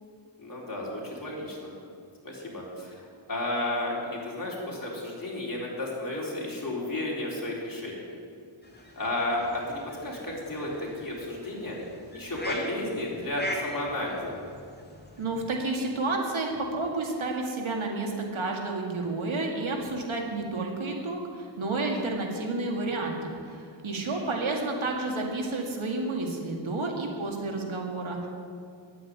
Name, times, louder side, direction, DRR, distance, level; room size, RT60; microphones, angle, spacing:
voice 1, 0.4-1.7 2.2-8.0 8.9-11.8 12.1-14.3 23.9-24.3, left 1 dB, 45° left, -4 dB, 4.0 m, -33 dB
sound 1, 8.6-15.2, left 1 dB, 20° left, 2.4 m, -41 dB
voice 2, 15.2-28.3, right 2 dB, 85° right, 1 dB, 2.1 m, -30 dB
9.9 x 8.5 x 9.5 m, 2.2 s
wide cardioid pair, 50°, 47 cm